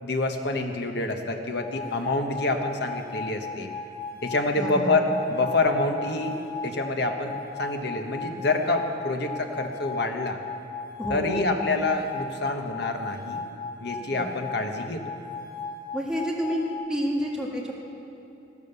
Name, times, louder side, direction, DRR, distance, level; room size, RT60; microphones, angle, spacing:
voice 1, 0.0-3.7 4.2-6.4 6.6-10.4 11.1-13.4 13.8-15.0, left 2 dB, 60° left, 4 dB, 1.3 m, -27 dB
sound 1, 1.6-16.7, left 4 dB, 25° left, 2.7 m, -37 dB
voice 2, 4.6-5.0 11.0-11.5 14.1-14.2 15.9-16.6 16.9-17.7, equal, 5° right, -3 dB, 1.8 m, -29 dB
15.0 x 12.5 x 6.8 m, 3.0 s
head